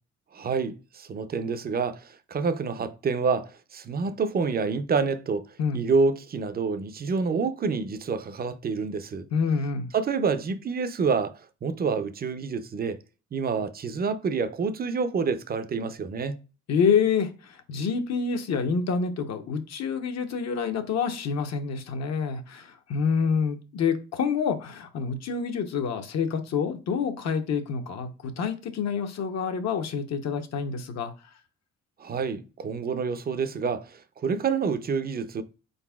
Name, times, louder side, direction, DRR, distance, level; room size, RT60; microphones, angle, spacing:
voice 1, 0.3-5.5 5.7-9.3 9.9-11.3 11.6-13.0 13.3-16.4 32.0-35.4, right 5 dB, 30° right, 0.5 m, -28 dB
voice 2, 9.3-9.9 16.7-31.1, left 6 dB, 60° left, 0.8 m, -27 dB
4.2 x 3.9 x 2.3 m
cardioid pair, 90°, 30 cm